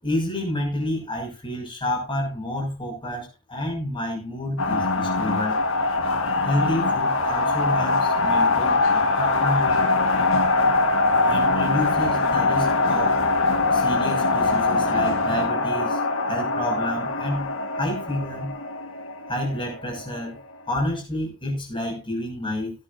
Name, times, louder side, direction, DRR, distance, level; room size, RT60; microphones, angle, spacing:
voice 1, 0.0-5.6 6.5-9.9 11.2-13.2 13.7-16.0 16.3-18.5 19.3-20.4 20.7-22.7, left 1 dB, 25° left, 0 dB, 6.6 m, -29 dB
sound 1, 4.6-20.4, left 3 dB, 60° left, 1.6 m, -22 dB
19.0 x 9.7 x 2.7 m, 0.27 s
head